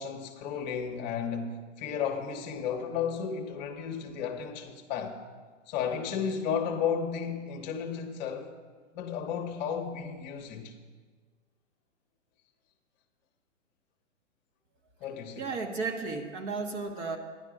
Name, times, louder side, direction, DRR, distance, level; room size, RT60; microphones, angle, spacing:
voice 1, 0.0-5.2 5.7-8.5 8.9-10.7 15.0-15.5, left 7 dB, 35° left, 1.1 m, -33 dB
voice 2, 15.4-17.2, right 4 dB, 35° right, 1.5 m, -34 dB
12.5 x 10.5 x 4.9 m
hypercardioid pair, 130°, 39 cm